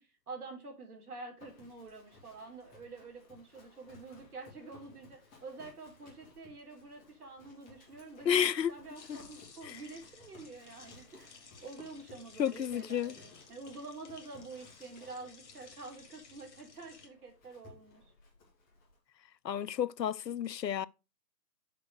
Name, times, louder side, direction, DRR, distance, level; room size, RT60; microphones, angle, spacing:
voice 1, 0.0-11.3 11.6-18.0, right 3 dB, 65° right, 3.3 m, -48 dB
Livestock farm animals working animals, 1.4-19.0, left 3 dB, 15° left, 2.3 m, -60 dB
voice 2, 8.3-8.7 9.1-9.2 9.6-9.8 12.4-13.1 19.4-20.9, left 9 dB, 85° left, 0.6 m, -31 dB
sound 1, 8.9-17.1, left 5 dB, 45° left, 1.8 m, -56 dB
6.8 x 4.5 x 6.3 m
figure-of-eight pair, 140°, 49 cm